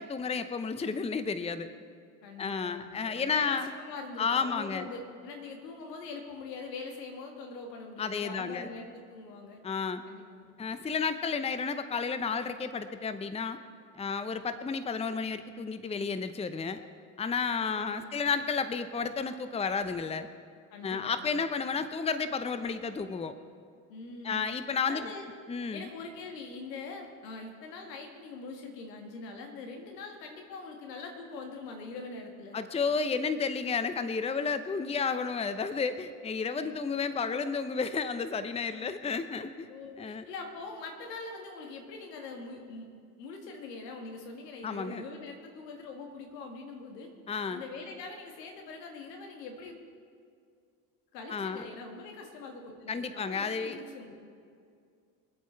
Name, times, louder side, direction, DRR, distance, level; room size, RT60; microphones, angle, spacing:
voice 1, 0.0-1.7 2.4-3.7 4.2-4.9 8.0-8.7 9.6-10.0 10.6-13.6 13.9-16.8 17.2-20.3 20.8-23.3 24.2-25.1 25.5-25.9 32.5-39.7 40.0-40.3 44.6-45.0 47.3-47.6 51.3-51.6 52.9-53.8, left 5 dB, 15° left, 11 dB, 0.7 m, -32 dB
voice 2, 2.2-9.6 10.1-10.5 17.4-18.1 20.7-21.4 23.9-24.5 24.9-25.3 25.7-32.6 36.5-37.0 38.7-39.0 39.7-42.9 43.2-47.1 47.5-49.8 51.1-54.2, left 3 dB, 80° left, 3 dB, 2.1 m, -43 dB
23.5 x 8.3 x 4.6 m, 2.2 s
hypercardioid pair, 65°, 48 cm